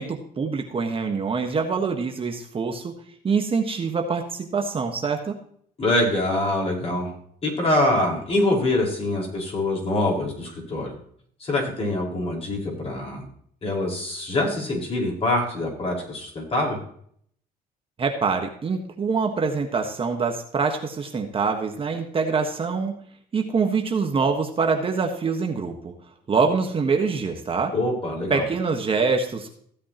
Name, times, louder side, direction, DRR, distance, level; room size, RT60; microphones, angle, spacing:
voice 1, 0.0-5.4 18.0-23.0 23.3-25.9 26.3-27.7 28.3-29.5, right 5 dB, 35° right, 3 dB, 1.4 m, -25 dB
voice 2, 5.8-7.1 7.4-10.9 11.4-13.2 13.6-16.8 27.7-28.4, left 1 dB, 35° left, -2 dB, 5.1 m, -24 dB
15.5 x 8.3 x 3.0 m, 0.63 s
cardioid pair, 110°, 17 cm